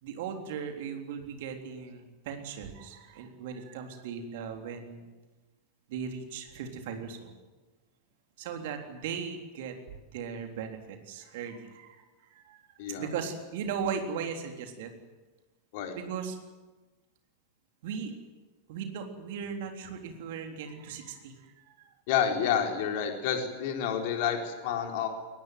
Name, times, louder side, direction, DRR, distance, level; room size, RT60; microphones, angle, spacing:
voice 1, 0.0-5.1 5.9-7.4 8.4-9.7 10.1-12.0 12.3-12.6 13.0-14.9 15.9-16.4 17.8-18.1 18.7-21.7, right 6 dB, 50° right, 4 dB, 3.5 m, -37 dB
voice 2, 22.1-25.1, left 8 dB, 50° left, 3 dB, 4.2 m, -29 dB
22.5 x 20.0 x 9.5 m, 1.2 s
figure-of-eight pair, 90°, 0 cm